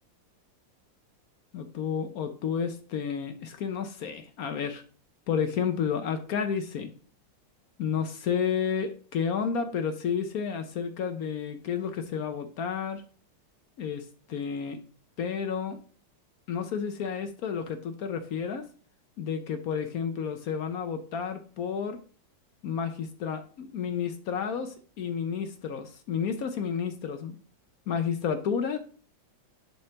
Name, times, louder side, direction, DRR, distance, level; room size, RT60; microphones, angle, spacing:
voice 1, 1.5-4.8 5.3-6.9 7.8-13.0 13.8-14.8 15.2-15.8 16.5-18.6 19.2-22.0 22.6-27.4 27.9-28.8, left 7 dB, 65° left, 8 dB, 1.0 m, -31 dB
11.0 x 4.4 x 2.8 m, 0.42 s
omnidirectional pair, 2.0 m